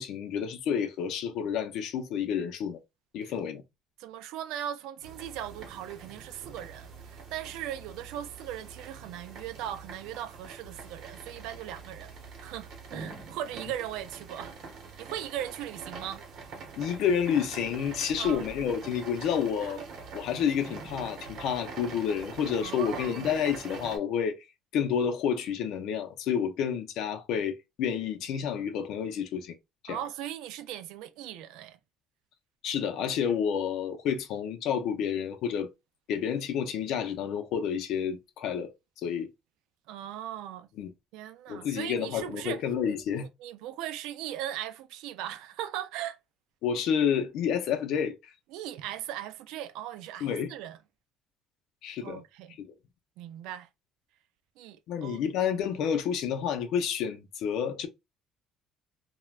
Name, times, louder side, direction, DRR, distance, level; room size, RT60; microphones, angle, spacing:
voice 1, 0.0-2.8 3.1-3.6 16.8-19.8 20.1-24.4 24.7-29.6 29.8-30.0 32.6-35.7 36.1-38.7 39.0-39.3 40.8-40.9 41.5-43.3 46.6-48.2 50.2-50.5 51.8-52.2 52.6-52.7 54.9-57.9, left 8 dB, 60° left, 0.5 m, -29 dB
voice 2, 4.0-12.1 12.4-14.5 15.0-16.2 18.2-18.4 19.6-19.8 22.6-23.3 29.9-31.8 39.9-40.7 41.1-42.6 43.4-46.2 48.5-50.8 52.0-52.5 53.2-53.7 54.6-55.2, right 11 dB, 90° right, 0.4 m, -38 dB
sound 1, 5.0-24.0, right 4 dB, 50° right, 0.9 m, -44 dB
3.2 x 2.2 x 2.3 m
cardioid pair, 175°, 0 cm